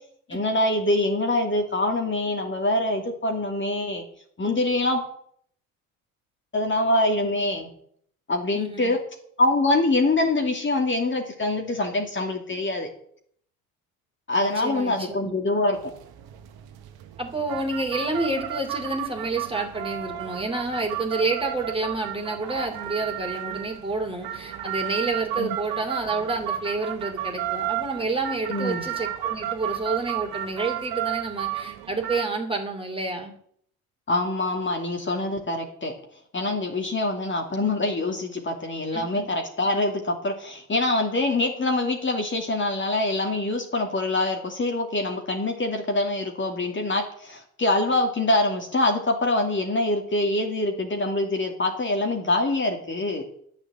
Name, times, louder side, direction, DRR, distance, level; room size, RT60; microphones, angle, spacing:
voice 1, 0.3-4.0 4.4-5.0 6.5-7.7 8.3-9.0 9.4-12.9 14.3-15.8 25.4-25.6 28.5-28.8 34.1-35.9 36.3-53.2, left 2 dB, 25° left, 2 dB, 2.6 m, -24 dB
voice 2, 8.5-8.9 14.4-15.3 17.2-33.3 38.9-39.2, right 3 dB, 15° right, 3 dB, 2.9 m, -29 dB
sound 1, 15.7-32.3, right 12 dB, 60° right, 1.5 m, -33 dB
9.9 x 7.2 x 7.8 m, 0.64 s
hypercardioid pair, 60°, 42 cm